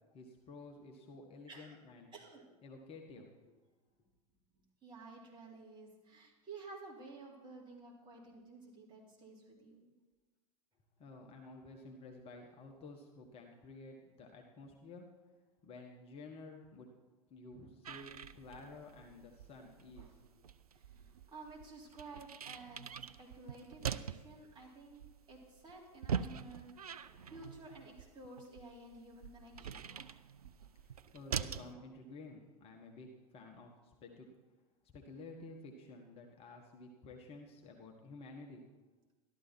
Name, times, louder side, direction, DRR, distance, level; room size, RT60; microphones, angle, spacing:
voice 1, 0.1-2.1 2.6-3.6 11.0-15.1 15.6-16.9 17.3-20.5 30.7-34.3 34.9-38.6, left 3 dB, 30° left, 2 dB, 1.4 m, -52 dB
voice 2, 1.5-1.8 2.1-2.5 4.8-9.9 20.0-20.1 20.9-22.8 23.2-25.0 25.3-27.0 27.3-29.9, right 3 dB, 25° right, -3 dB, 3.7 m, -53 dB
sound 1, 17.8-31.7, right 7 dB, 75° right, 0.5 m, -44 dB
12.5 x 12.5 x 4.5 m, 1.2 s
figure-of-eight pair, 85°, 19 cm